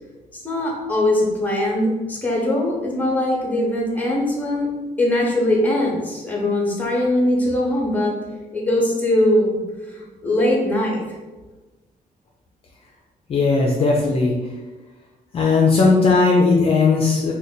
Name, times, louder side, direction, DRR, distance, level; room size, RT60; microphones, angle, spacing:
voice 1, 0.4-4.7 5.0-8.2 8.5-9.6 9.9-11.2, left 1 dB, 10° left, -2 dB, 0.8 m, -21 dB
voice 2, 13.3-14.3 15.3-17.3, left 4 dB, 40° left, -1 dB, 0.4 m, -17 dB
3.2 x 2.2 x 3.9 m, 1.2 s
cardioid pair, 150°, 14 cm